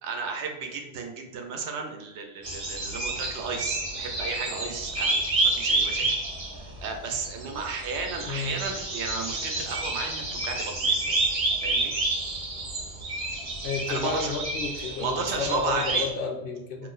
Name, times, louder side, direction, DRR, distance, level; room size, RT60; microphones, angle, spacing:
voice 1, 0.0-5.2 5.5-6.1 6.8-11.2 11.6-11.9 13.9-14.4 14.8-16.1 16.8-16.9, right 4 dB, 80° right, 3 dB, 0.9 m, -33 dB
sound 1, 2.4-16.1, right 2 dB, 40° right, 0.6 m, -29 dB
voice 2, 8.3-8.6 13.6-16.9, left 5 dB, 65° left, 2 dB, 0.7 m, -31 dB
3.0 x 2.0 x 3.8 m, 0.90 s
omnidirectional pair, 1.2 m